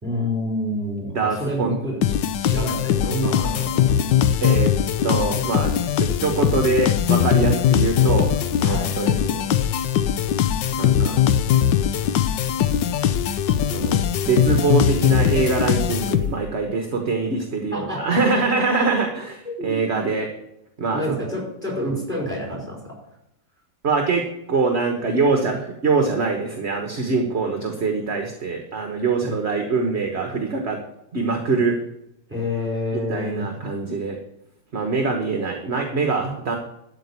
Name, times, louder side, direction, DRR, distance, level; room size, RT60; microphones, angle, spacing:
voice 1, 0.0-2.0 2.4-4.0 8.6-9.0 17.7-18.9 19.4-20.0 20.9-23.0 29.2-29.4 32.3-33.5, equal, 5° right, -2 dB, 4.8 m, -28 dB
voice 2, 1.1-1.7 4.4-4.7 5.0-5.7 6.0-9.6 10.8-11.2 13.7-20.3 20.8-21.2 23.8-30.8 31.1-31.8 33.1-34.2 34.7-36.6, right 4 dB, 40° right, 3 dB, 1.3 m, -23 dB
sound 1, 2.0-16.6, left 9 dB, 75° left, 1.3 m, -20 dB
12.5 x 5.2 x 8.3 m, 0.80 s
omnidirectional pair, 2.1 m